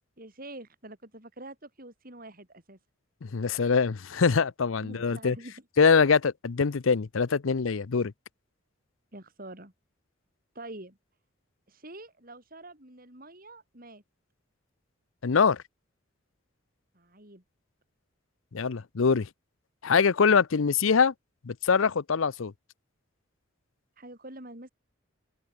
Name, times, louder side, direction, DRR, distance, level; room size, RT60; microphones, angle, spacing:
voice 1, 0.2-2.8 4.8-5.6 9.1-9.7 10.5-11.0 11.7-14.0 16.9-17.4 20.5-20.7 24.0-24.7, right 1 dB, 45° right, 5.6 m, -46 dB
voice 2, 3.2-5.4 5.8-8.1 15.2-15.6 18.5-19.3 19.8-21.1 21.4-22.5, left 5 dB, 75° left, 0.6 m, -23 dB
open air
head